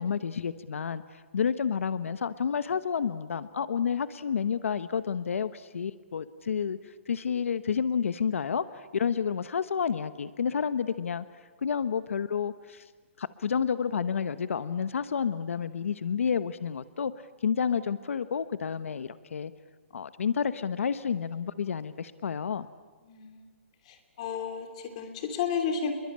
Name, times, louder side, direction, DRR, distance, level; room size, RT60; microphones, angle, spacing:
voice 1, 0.0-11.2 11.6-12.9 13.2-17.1 17.4-19.5 19.9-22.7, left 7 dB, 90° left, 13 dB, 1.1 m, -30 dB
voice 2, 23.0-23.5 23.8-25.9, left 7 dB, 30° left, 6 dB, 3.1 m, -32 dB
28.5 x 22.5 x 8.8 m, 1.4 s
hypercardioid pair, 175°, 7 cm